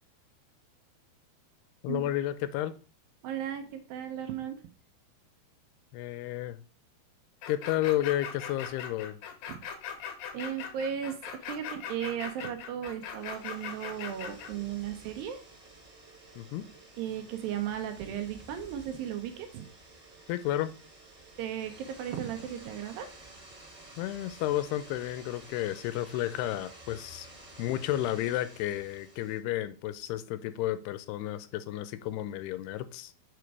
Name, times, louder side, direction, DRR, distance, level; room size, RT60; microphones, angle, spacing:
voice 1, 1.8-2.7 5.9-6.6 7.5-9.2 16.4-16.7 20.3-20.7 24.0-27.3 27.6-33.1, left 13 dB, 90° left, 2.6 m, -32 dB
voice 2, 3.2-4.6 9.5-9.6 10.3-15.4 17.0-19.7 21.4-23.1, right 9 dB, 75° right, 2.3 m, -36 dB
sound 1, 7.4-14.5, left 8 dB, 75° left, 2.4 m, -40 dB
secador Perruqueria rosa tous carrer ruben dario sant andreu, 12.9-29.4, right 2 dB, 45° right, 0.9 m, -52 dB
6.1 x 5.0 x 4.6 m
omnidirectional pair, 4.6 m